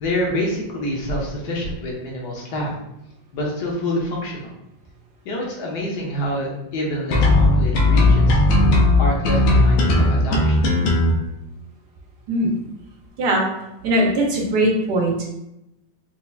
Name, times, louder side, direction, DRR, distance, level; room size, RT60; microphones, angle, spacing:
voice 1, 0.0-2.7 3.3-4.5 5.2-8.4 9.0-10.6, left 1 dB, 70° left, -3 dB, 1.3 m, -27 dB
sound 1, 7.1-11.1, left 2 dB, 85° left, 1.4 m, -16 dB
voice 2, 12.3-12.6 13.2-13.5 13.8-15.2, right 1 dB, 70° right, -1 dB, 1.3 m, -20 dB
4.5 x 2.8 x 2.3 m, 0.86 s
omnidirectional pair, 2.0 m